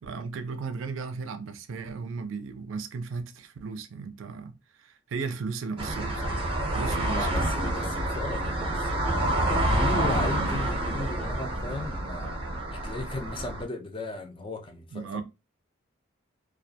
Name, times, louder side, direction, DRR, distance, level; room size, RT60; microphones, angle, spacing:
voice 1, 0.0-6.4 6.7-7.3 14.9-15.2, right 4 dB, 75° right, 0.4 m, -35 dB
sound 1, 5.8-13.6, right 1 dB, 25° right, 0.6 m, -28 dB
voice 2, 7.1-12.4 12.7-15.2, left 2 dB, 25° left, 0.4 m, -36 dB
2.3 x 2.2 x 2.7 m
head